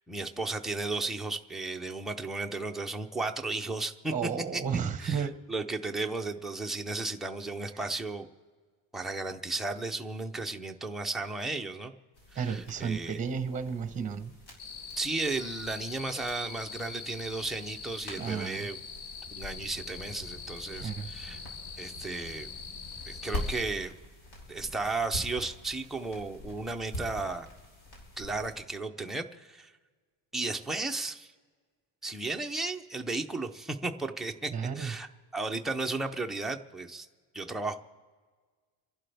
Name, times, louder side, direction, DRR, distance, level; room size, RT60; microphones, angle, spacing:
voice 1, 0.0-4.1 4.5-4.6 5.0-8.3 8.9-11.9 12.3-13.2 15.0-18.8 19.3-21.4 21.8-22.5 23.1-24.0 24.5-27.5 28.2-29.7 30.3-31.3 32.0-37.1 37.3-37.8, right 3 dB, ahead, 2 dB, 0.4 m, -34 dB
voice 2, 4.1-5.3 12.3-14.3 18.2-18.7 20.7-21.1 34.5-34.9, right 6 dB, 15° right, 9 dB, 0.8 m, -33 dB
sound 1, 12.1-28.5, left 1 dB, 85° left, 5.5 m, -44 dB
sound 2, 14.6-23.6, left 6 dB, 65° left, 1.2 m, -44 dB
29.0 x 11.5 x 3.4 m, 1.5 s
cardioid pair, 170°, 47 cm